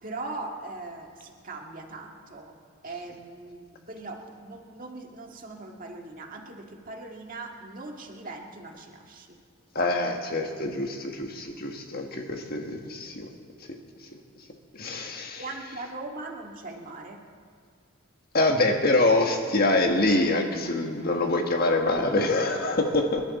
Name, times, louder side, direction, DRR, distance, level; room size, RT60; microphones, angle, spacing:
voice 1, 0.0-2.5 2.8-9.4 15.4-17.2, right 2 dB, 40° right, 1 dB, 1.8 m, -40 dB
voice 2, 9.7-13.3 13.7-13.8 14.7-15.4 18.3-23.2, left 2 dB, 45° left, 3 dB, 1.4 m, -25 dB
28.0 x 11.5 x 4.2 m, 2.1 s
head